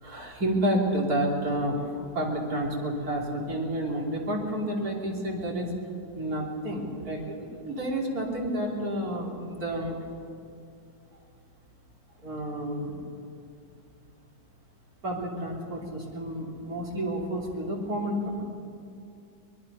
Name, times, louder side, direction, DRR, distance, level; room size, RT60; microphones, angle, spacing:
voice 1, 0.0-5.7 6.1-10.0 12.2-13.0 15.0-18.4, right 1 dB, 55° right, -1 dB, 3.6 m, -30 dB
23.5 x 22.0 x 5.5 m, 2.5 s
omnidirectional pair, 1.9 m